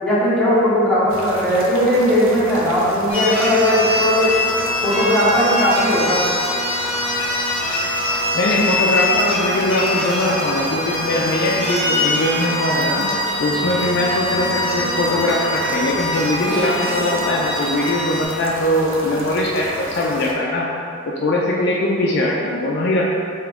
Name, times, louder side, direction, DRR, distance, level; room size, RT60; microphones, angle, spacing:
voice 1, 0.0-4.3 4.8-6.2, equal, 5° left, -11 dB, 1.0 m, -17 dB
sound 1, 1.1-20.3, right 1 dB, 80° right, 0.6 m, -32 dB
sound 2, 3.1-18.3, left 2 dB, 25° left, 0.7 m, -23 dB
voice 2, 8.3-13.0 13.4-20.7 21.0-23.0, left 1 dB, 55° left, -3 dB, 0.4 m, -21 dB
sound 3, 12.8-13.2 14.1-17.7, right 1 dB, 55° right, 0.9 m, -33 dB
3.5 x 2.9 x 3.4 m, 2.5 s
head